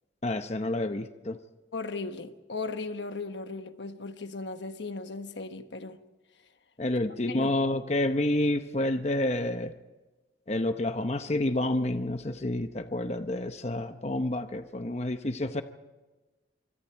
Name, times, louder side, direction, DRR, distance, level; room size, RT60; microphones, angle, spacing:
voice 1, 0.2-1.4 6.8-9.7 10.5-15.6, left 1 dB, 35° left, 0.8 m, -29 dB
voice 2, 1.7-6.0 7.3-7.5, left 3 dB, 80° left, 1.3 m, -37 dB
25.5 x 25.0 x 4.6 m
head